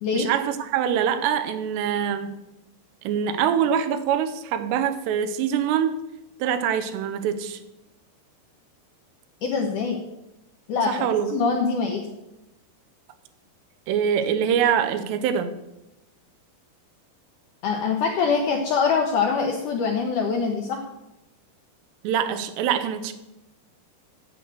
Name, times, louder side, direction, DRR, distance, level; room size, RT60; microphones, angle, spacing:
voice 1, 0.1-2.4 3.0-5.9 6.4-7.6 10.9-11.5 13.9-15.5 22.0-23.1, right 8 dB, 90° right, 9 dB, 3.0 m, -24 dB
voice 2, 9.4-10.0 10.7-12.1 17.6-20.8, left 5 dB, 80° left, 2 dB, 1.8 m, -24 dB
8.3 x 7.7 x 6.7 m, 0.93 s
omnidirectional pair, 4.8 m